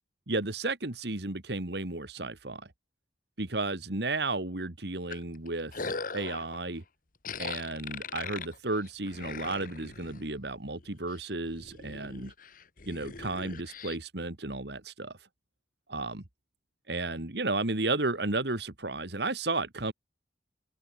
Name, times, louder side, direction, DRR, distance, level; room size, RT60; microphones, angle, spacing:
voice 1, 0.3-2.7 3.4-6.8 7.4-12.3 12.9-15.1 15.9-16.2 16.9-19.9, right 2 dB, 65° right, 2.0 m, -33 dB
sound 1, 5.1-6.6 7.2-10.3 10.7-11.2 11.5-14.0, left 5 dB, 50° left, 1.7 m, -40 dB
open air
head